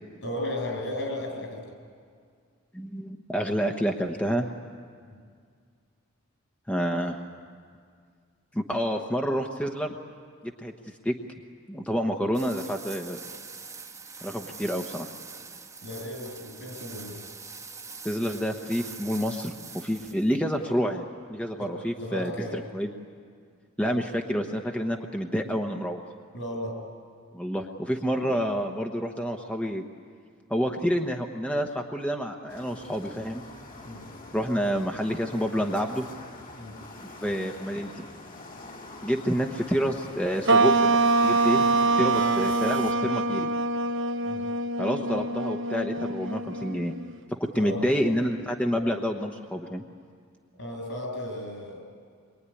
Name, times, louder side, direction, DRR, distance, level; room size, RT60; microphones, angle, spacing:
voice 1, 0.2-1.7 5.1-5.2 15.8-17.2 21.6-22.6 26.3-26.8 28.3-28.4 33.8-34.1 36.6-36.8 44.2-44.5 47.6-48.0 50.6-51.9, left 1 dB, 65° left, 3 dB, 7.2 m, -35 dB
voice 2, 2.7-4.4 6.7-7.2 8.5-10.0 10.4-10.7 11.0-11.1 11.7-13.2 14.2-15.1 18.0-21.0 21.3-22.9 23.8-26.0 27.3-29.8 30.5-33.4 34.3-36.1 37.2-38.0 39.0-41.6 41.9-43.5 44.8-46.9 47.3-49.8, equal, 5° left, 2 dB, 1.0 m, -28 dB
sound 1, 12.3-20.4, right 4 dB, 15° right, 1.3 m, -43 dB
sound 2, 32.5-42.9, left 2 dB, 45° left, 2.3 m, -43 dB
sound 3, 40.5-47.2, right 3 dB, 65° right, 0.9 m, -24 dB
25.0 x 22.5 x 9.9 m, 2.1 s
head